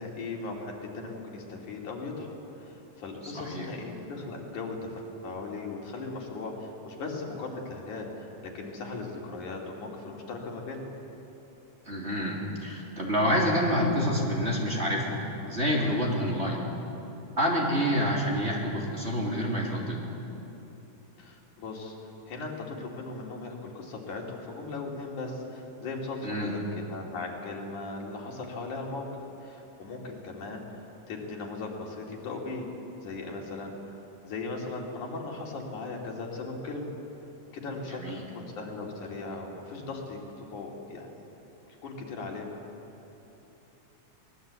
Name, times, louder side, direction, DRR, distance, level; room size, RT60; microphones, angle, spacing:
voice 1, 0.0-11.0 16.4-16.6 17.9-18.1 21.2-29.1 29.4-32.7 33.0-34.0 34.2-36.9 37.5-41.1 41.7-42.5, left 3 dB, 80° left, -1 dB, 4.2 m, -38 dB
voice 2, 3.2-3.7 11.8-16.6 17.4-20.1 26.2-26.5 37.8-38.2, equal, 20° right, -3 dB, 3.3 m, -28 dB
23.5 x 20.0 x 8.3 m, 3.0 s
omnidirectional pair, 3.4 m